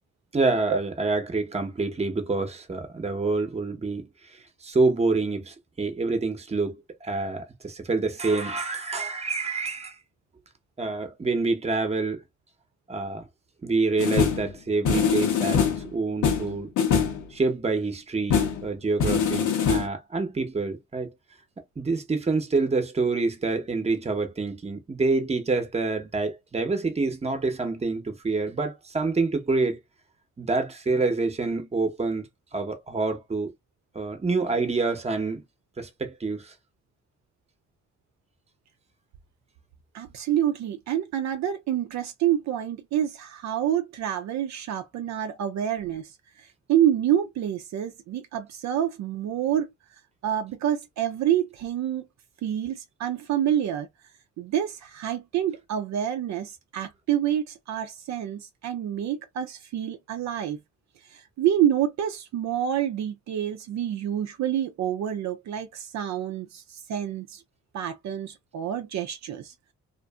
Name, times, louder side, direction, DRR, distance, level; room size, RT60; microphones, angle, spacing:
voice 1, 0.3-10.0 10.8-12.2 12.9-13.3 13.6-16.7 17.3-21.1 21.8-29.8 30.4-32.3 32.5-33.5 33.9-35.4 35.8-36.5, right 3 dB, 20° right, 0.8 m, -27 dB
sound 1, 14.0-14.5 14.8-15.9 16.2-17.2 18.3-18.6 19.0-19.9, left 7 dB, 80° left, 0.9 m, -23 dB
voice 2, 39.9-46.1 46.4-49.7 50.2-52.1 52.4-53.9 54.4-60.6 61.1-67.4 67.7-69.7, right 10 dB, 65° right, 0.5 m, -27 dB
2.5 x 2.5 x 2.3 m
cardioid pair, 90°, 30 cm